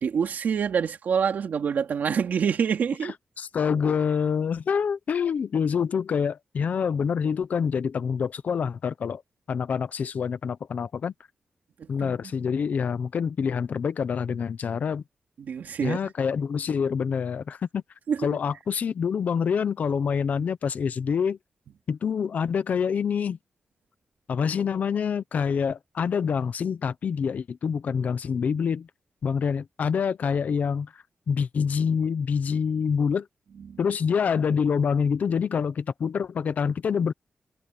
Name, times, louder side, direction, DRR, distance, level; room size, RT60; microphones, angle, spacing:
voice 1, 0.0-3.1 11.8-12.2 15.4-16.1 18.1-18.3 33.6-33.8, right 7 dB, 70° right, 2.8 m, -26 dB
voice 2, 3.4-9.2 9.5-11.1 11.9-15.0 15.8-17.8 18.2-21.4 21.9-23.4 24.3-28.9 29.2-30.9 31.3-33.3 33.8-37.1, left 6 dB, 60° left, 0.8 m, -26 dB
wide cardioid pair, 170°, 3 cm